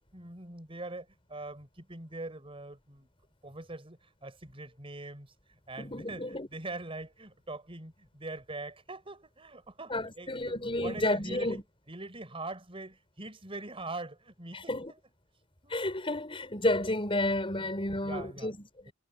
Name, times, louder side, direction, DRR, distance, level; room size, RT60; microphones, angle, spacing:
voice 1, 0.1-3.1 3.4-5.3 5.7-11.6 11.9-14.7 15.6-15.8 17.6-18.5 18.9-19.0, right 2 dB, 30° right, 4.9 m, -43 dB
voice 2, 5.8-6.5 9.9-11.6 14.5-14.9 15.7-18.9, left 1 dB, 30° left, 6.5 m, -31 dB
head